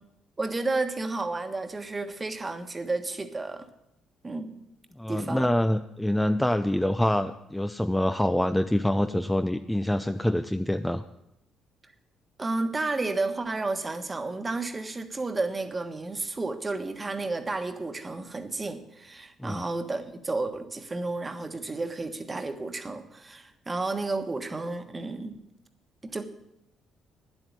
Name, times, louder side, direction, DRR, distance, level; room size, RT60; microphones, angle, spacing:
voice 1, 0.4-3.7 4.2-4.6 5.1-5.5 12.4-25.4 26.0-26.3, right 3 dB, 20° right, 8 dB, 1.4 m, -32 dB
voice 2, 5.0-11.0 19.4-19.6, left 1 dB, 5° left, 9 dB, 0.5 m, -25 dB
10.0 x 8.1 x 9.8 m, 0.86 s
cardioid pair, 110°, 0 cm